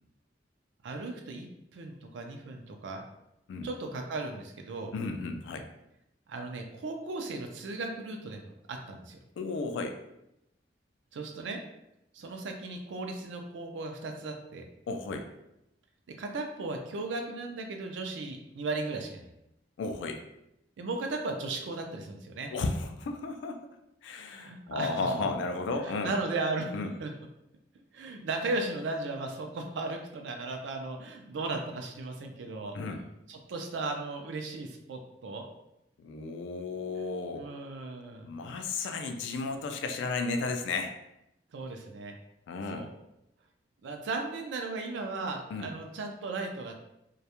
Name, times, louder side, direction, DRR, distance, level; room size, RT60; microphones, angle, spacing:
voice 1, 0.8-1.5 1.7-3.0 3.6-4.9 6.3-9.2 11.1-11.6 12.1-14.6 16.2-19.3 20.8-22.5 24.3-25.1 25.8-27.1 27.9-32.7 33.3-35.4 37.3-38.3 41.5-42.1 42.7-42.9 43.8-46.8, right 3 dB, 80° right, 4 dB, 0.4 m, -36 dB
voice 2, 4.9-5.7 9.4-10.0 14.9-15.3 19.8-20.2 22.5-23.7 24.0-26.2 26.7-26.9 32.7-33.0 36.0-37.5 38.2-40.9 42.5-42.9 45.5-45.7, left 3 dB, 80° left, 5 dB, 0.3 m, -33 dB
2.2 x 2.0 x 2.8 m, 0.85 s
head